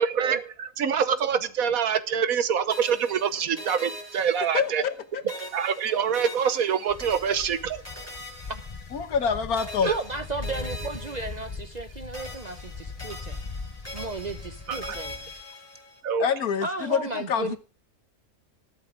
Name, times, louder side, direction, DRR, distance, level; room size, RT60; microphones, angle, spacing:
voice 1, 0.0-4.8 5.5-7.8 9.8-9.9 14.7-14.9 16.0-16.2, right 7 dB, 75° right, 1.4 m, -25 dB
sound 1, 2.7-5.0 5.3-9.3 9.6-11.9 12.1-16.0, left 1 dB, 10° left, 6.9 m, -42 dB
voice 2, 4.5-5.2 8.9-9.9 16.2-17.6, left 6 dB, 85° left, 1.7 m, -26 dB
sound 2, 6.9-15.4, left 4 dB, 35° left, 0.6 m, -40 dB
voice 3, 9.9-13.4 13.9-15.3 16.6-17.6, right 2 dB, 45° right, 0.6 m, -34 dB
20.0 x 8.4 x 3.7 m
omnidirectional pair, 1.5 m